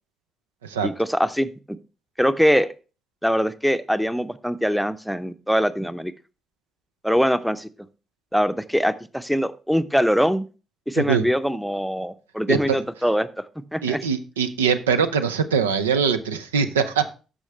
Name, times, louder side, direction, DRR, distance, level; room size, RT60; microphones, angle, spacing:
voice 1, 0.8-1.5 2.2-2.7 3.2-6.1 7.0-7.7 8.3-10.5 10.9-13.3 13.7-14.0, equal, ahead, 14 dB, 0.7 m, -22 dB
voice 2, 13.8-17.0, right 6 dB, 80° right, 10 dB, 0.5 m, -22 dB
13.5 x 5.0 x 3.2 m, 0.33 s
figure-of-eight pair, 40°, 0 cm